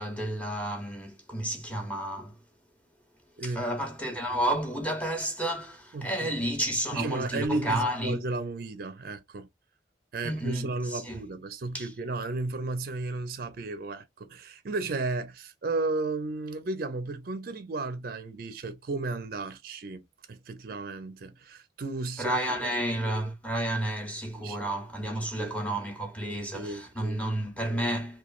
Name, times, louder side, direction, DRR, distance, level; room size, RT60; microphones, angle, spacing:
voice 1, 0.0-2.3 3.4-8.2 10.2-11.2 11.7-11.9 22.2-28.2, right 1 dB, 5° left, 0.7 m, -31 dB
voice 2, 5.9-6.4 6.9-9.5 10.1-20.0 20.3-22.7 24.4-24.6 25.0-25.5 26.2-27.2, right 3 dB, 50° right, 0.4 m, -34 dB
3.0 x 2.2 x 2.3 m
head